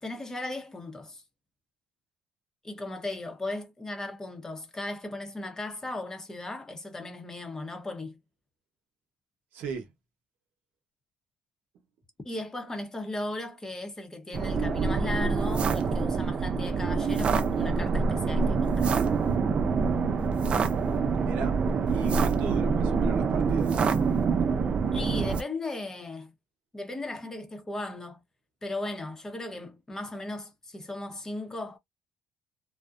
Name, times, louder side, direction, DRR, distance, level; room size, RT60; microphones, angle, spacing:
voice 1, 0.0-1.2 2.6-8.2 12.2-19.0 24.9-26.3 26.7-28.2 28.6-31.8, left 2 dB, 20° left, 0.8 m, -36 dB
voice 2, 9.5-9.8 21.2-21.6 21.9-23.8, right 6 dB, 80° right, 0.8 m, -36 dB
sound 1, 14.3-25.4, right 5 dB, 40° right, 0.4 m, -26 dB
2.6 x 2.0 x 2.4 m
cardioid pair, 100°, 3 cm